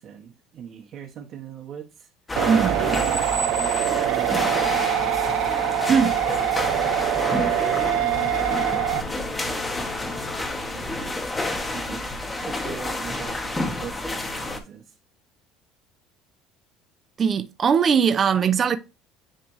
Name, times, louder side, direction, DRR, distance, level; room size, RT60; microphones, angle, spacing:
voice 1, 0.0-2.4 2.8-3.4 4.0-5.2 6.0-6.3 7.1-10.0 10.6-11.4 11.7-15.0, right 8 dB, 45° right, 1.1 m, -41 dB
sound 1, 2.3-14.6, left 2 dB, 15° left, 1.1 m, -29 dB
sound 2, 2.4-9.0, right 14 dB, 75° right, 0.5 m, -24 dB
voice 2, 2.5-3.0 5.9-6.1 17.2-18.8, right 6 dB, 25° right, 0.5 m, -20 dB
Brass instrument, 4.5-10.9, left 4 dB, 40° left, 1.2 m, -38 dB
10.0 x 3.3 x 3.1 m
cardioid pair, 155°, 0 cm